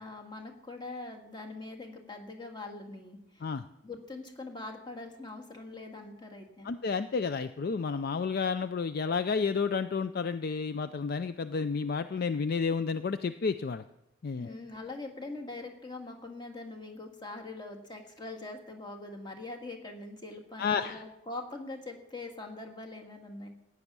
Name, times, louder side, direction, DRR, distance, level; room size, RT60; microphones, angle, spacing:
voice 1, 0.0-3.5 3.8-6.7 14.4-23.5, left 2 dB, 20° left, 2 dB, 1.7 m, -43 dB
voice 2, 6.6-13.8 14.2-14.5 20.6-21.0, left 5 dB, 45° left, 11 dB, 0.4 m, -31 dB
15.5 x 9.6 x 6.1 m, 0.85 s
head